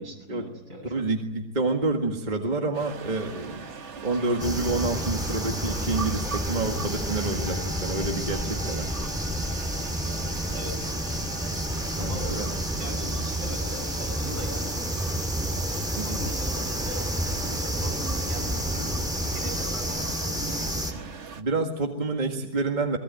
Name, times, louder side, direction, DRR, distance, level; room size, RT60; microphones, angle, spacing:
voice 1, 0.0-1.1 10.5-10.9 12.0-12.4 12.8-14.8 16.0-17.0 17.4-19.0 19.3-21.0, equal, 70° right, 1 dB, 7.9 m, -40 dB
voice 2, 0.9-3.6 4.0-8.9 12.0-12.5 16.0-16.2 21.4-23.0, right 3 dB, 30° right, 2 dB, 1.9 m, -28 dB
sound 1, 2.7-21.4, right 5 dB, 50° right, 1.4 m, -40 dB
sound 2, 4.4-20.9, equal, ahead, 2.1 m, -30 dB
23.5 x 20.0 x 9.1 m, 0.98 s
omnidirectional pair, 1.7 m